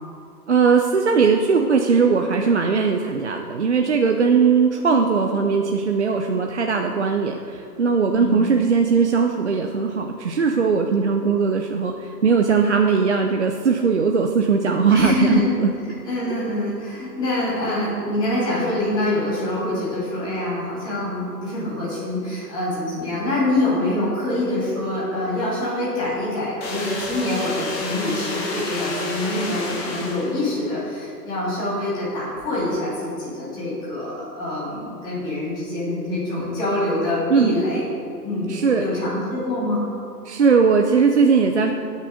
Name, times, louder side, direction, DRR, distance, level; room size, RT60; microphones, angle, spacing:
voice 1, 0.5-15.7 37.3-37.6 38.5-38.8 40.2-41.7, right 5 dB, 45° right, 3 dB, 0.6 m, -19 dB
voice 2, 8.1-8.4 14.9-15.4 16.0-37.8 38.2-39.8, left 1 dB, 10° left, -9 dB, 2.4 m, -25 dB
sound 1, 26.6-30.6, left 2 dB, 35° left, 1.8 m, -30 dB
18.5 x 6.6 x 5.0 m, 2.7 s
hypercardioid pair, 175°, 50 cm